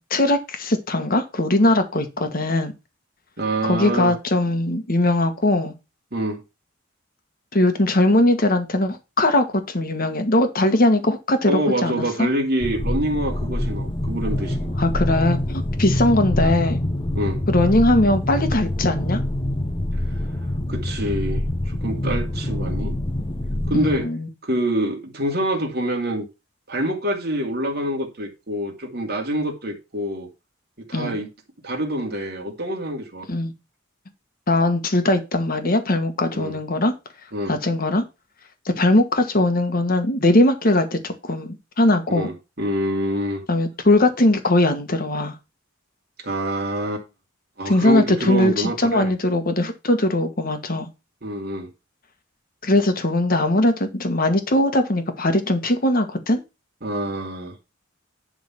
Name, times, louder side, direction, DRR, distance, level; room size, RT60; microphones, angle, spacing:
voice 1, 0.0-2.7 3.6-5.7 7.5-12.3 14.8-16.8 17.5-19.2 23.7-24.3 30.9-31.2 33.3-33.5 34.5-36.9 37.5-38.0 38.6-42.3 43.5-45.3 47.6-50.9 52.6-56.4, left 1 dB, 45° left, 1.5 m, -20 dB
voice 2, 3.4-4.1 6.1-6.4 11.5-14.7 15.9-16.0 17.1-17.4 20.7-22.9 23.7-24.1 24.4-26.2 26.7-30.3 30.8-31.3 31.6-33.3 36.3-36.6 37.3-37.6 42.1-43.4 46.2-47.0 47.6-49.1 51.2-51.7 56.8-57.5, right 1 dB, 50° right, 2.5 m, -26 dB
sound 1, 12.6-24.0, left 1 dB, 25° left, 0.8 m, -25 dB
11.0 x 3.9 x 5.8 m
head